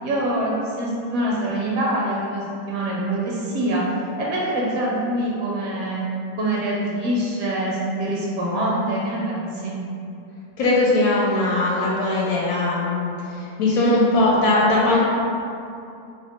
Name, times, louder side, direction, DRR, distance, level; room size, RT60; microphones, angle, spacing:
voice 1, 0.0-3.8 4.2-6.0 6.4-9.8, right 1 dB, 75° right, -5 dB, 1.0 m, -25 dB
voice 2, 10.6-15.0, left 2 dB, 85° left, -5 dB, 1.0 m, -20 dB
2.8 x 2.1 x 4.1 m, 2.6 s
omnidirectional pair, 1.5 m